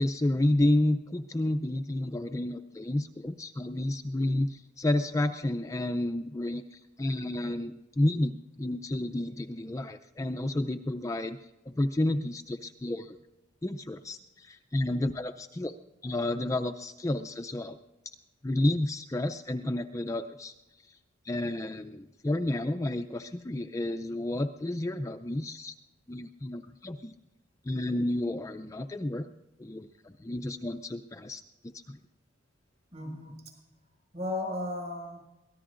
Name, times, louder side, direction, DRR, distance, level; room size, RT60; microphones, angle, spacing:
voice 1, 0.0-11.4 11.7-13.2 13.6-15.7 16.0-17.8 18.4-20.5 20.9-21.0 21.2-25.7 26.1-27.1 27.6-29.3 29.6-32.0, left 1 dB, 15° left, 7 dB, 0.4 m, -31 dB
voice 2, 32.9-33.6 34.1-35.2, left 1 dB, 35° right, 0 dB, 6.3 m, -35 dB
23.5 x 18.0 x 2.5 m, 1.0 s
head